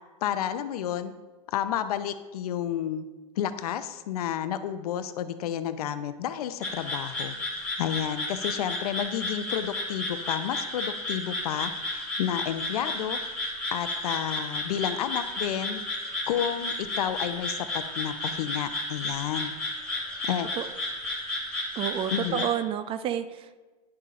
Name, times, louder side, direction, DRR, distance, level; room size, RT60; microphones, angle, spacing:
voice 1, 0.2-1.1 1.5-3.0 3.4-7.3 7.8-13.2 13.7-15.8 16.3-19.6 20.2-20.5 22.1-22.5, left 10 dB, 75° left, 11 dB, 0.6 m, -31 dB
sound 1, 6.6-22.5, left 1 dB, 5° left, 2.2 m, -33 dB
voice 2, 21.8-23.6, right 10 dB, 30° right, 12 dB, 0.4 m, -30 dB
9.7 x 6.9 x 2.5 m, 1.2 s
supercardioid pair, 125°, 19 cm